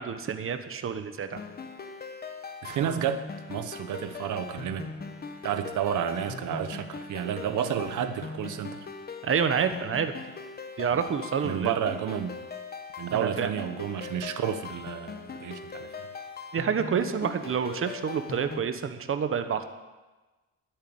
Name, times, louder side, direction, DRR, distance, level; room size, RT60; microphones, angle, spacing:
voice 1, 0.0-1.4 9.2-10.1 10.8-11.9 13.1-13.5 16.5-19.7, right 7 dB, 40° right, 9 dB, 1.2 m, -28 dB
sound 1, 1.3-18.6, left 5 dB, 30° left, 1.2 m, -40 dB
voice 2, 2.6-4.9 5.4-8.8 10.9-11.0 11.4-12.4 13.0-16.1, right 9 dB, 70° right, 10 dB, 1.2 m, -31 dB
12.0 x 9.6 x 7.9 m, 1.2 s
cardioid pair, 110°, 32 cm